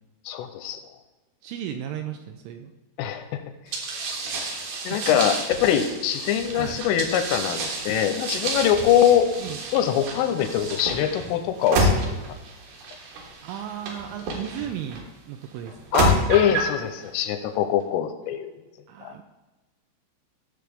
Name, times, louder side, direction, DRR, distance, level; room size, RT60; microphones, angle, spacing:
voice 1, 0.3-0.8 3.0-3.4 4.9-9.3 9.7-12.2 15.9-18.5 19.0-19.1, left 10 dB, 85° left, 7 dB, 3.0 m, -23 dB
voice 2, 1.4-2.7 4.7-5.2 5.7-5.9 6.6-6.8 9.4-9.6 13.4-16.1 18.9-19.2, right 10 dB, 85° right, 5 dB, 2.8 m, -35 dB
sound 1, 3.7-15.0 15.7-16.8, right 1 dB, 65° right, 2.4 m, -29 dB
16.0 x 6.3 x 3.4 m, 1.1 s
omnidirectional pair, 5.9 m